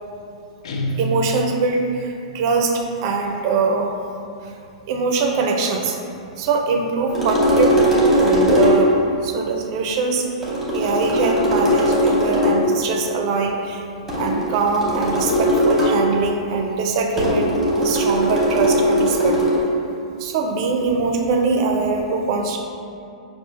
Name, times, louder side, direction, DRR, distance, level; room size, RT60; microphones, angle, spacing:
Guitar, 0.6-1.9, left 1 dB, 65° left, 0.4 m, -27 dB
voice 1, 1.0-4.0 4.9-6.0 6.4-7.8 8.1-8.9 9.2-10.3 10.7-13.8 14.2-19.4 20.2-22.6, right 4 dB, 50° right, 2 dB, 0.4 m, -22 dB
sound 1, 7.1-9.0 10.4-12.7 14.1-16.1 17.2-19.6, equal, 5° right, 1.0 m, -19 dB
5.5 x 2.4 x 2.4 m, 2.5 s
hypercardioid pair, 105°, 3 cm